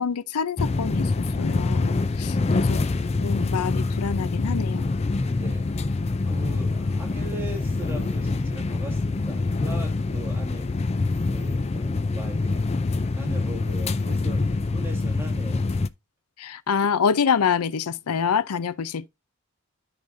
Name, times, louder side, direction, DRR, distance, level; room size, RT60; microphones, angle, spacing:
voice 1, 0.0-2.8 3.2-4.9 16.4-19.1, left 6 dB, 90° left, 0.5 m, -26 dB
sound 1, 0.6-15.9, left 3 dB, 30° left, 0.4 m, -25 dB
voice 2, 2.2-2.7 5.3-6.0 6.3-10.7 11.2-12.7 13.1-15.7, right 2 dB, 10° right, 2.3 m, -39 dB
12.5 x 5.0 x 2.6 m
head